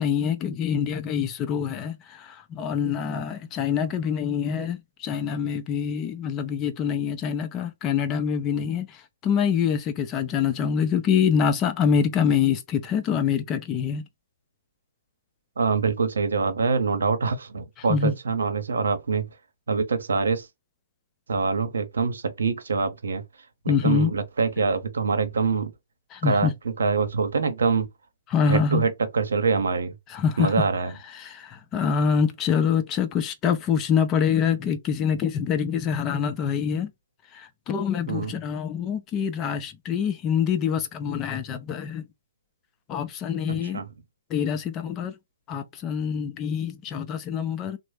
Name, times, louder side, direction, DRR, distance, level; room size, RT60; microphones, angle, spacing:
voice 1, 0.0-14.0 17.9-18.1 23.7-24.1 26.1-26.5 28.3-28.8 30.1-30.7 31.1-36.9 37.3-42.0 42.9-43.8 44.3-45.1 45.5-47.8, left 7 dB, 25° left, 0.5 m, -25 dB
voice 2, 15.6-19.3 19.7-20.5 21.3-23.2 23.6-25.7 26.2-26.5 26.8-27.9 28.4-30.0 30.4-30.9 38.1-38.3 43.5-43.9, right 5 dB, 75° right, 0.8 m, -25 dB
3.1 x 2.0 x 3.3 m
hypercardioid pair, 135°, 0 cm